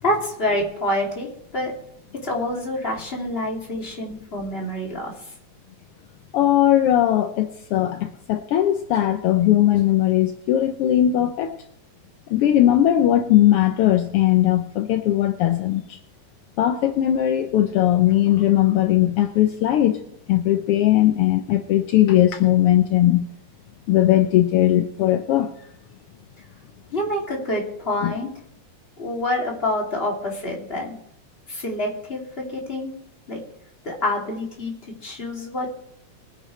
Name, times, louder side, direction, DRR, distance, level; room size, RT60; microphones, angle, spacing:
voice 1, 0.0-1.7 2.2-5.1 26.9-28.3 29.0-31.0 31.5-32.9 33.3-33.4 33.8-34.7 35.0-35.8, left 1 dB, 20° left, -1 dB, 2.7 m, -27 dB
voice 2, 6.3-11.6 12.3-16.0 16.6-20.0 20.3-23.3 23.9-25.5 28.0-28.1, left 12 dB, 75° left, 7 dB, 1.4 m, -19 dB
23.0 x 9.8 x 3.2 m, 0.74 s
omnidirectional pair, 3.3 m